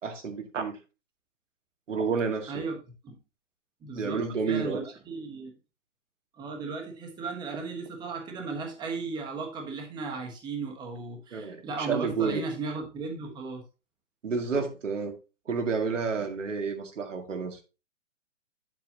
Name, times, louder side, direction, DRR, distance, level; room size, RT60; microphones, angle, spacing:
voice 1, 0.0-0.8 1.9-2.6 4.0-4.8 11.3-12.5 14.2-15.1 15.5-17.6, right 5 dB, 90° right, 1.9 m, -30 dB
voice 2, 3.8-5.5 6.4-13.6, right 4 dB, 10° right, 1.2 m, -36 dB
8.3 x 7.4 x 2.7 m
hypercardioid pair, 155°, 36 cm